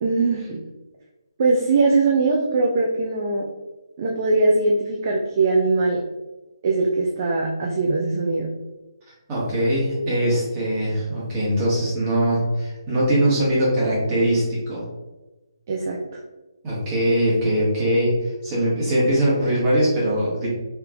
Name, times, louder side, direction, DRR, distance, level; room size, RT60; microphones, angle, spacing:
voice 1, 0.0-0.6 1.4-3.5 4.0-6.0 6.6-8.5 15.7-16.2, right 3 dB, 40° right, -1 dB, 0.4 m, -21 dB
voice 2, 9.3-14.8 16.6-18.1 18.4-20.5, right 1 dB, 20° right, -7 dB, 1.4 m, -21 dB
3.4 x 2.9 x 2.4 m, 1.1 s
figure-of-eight pair, 145°, 2 cm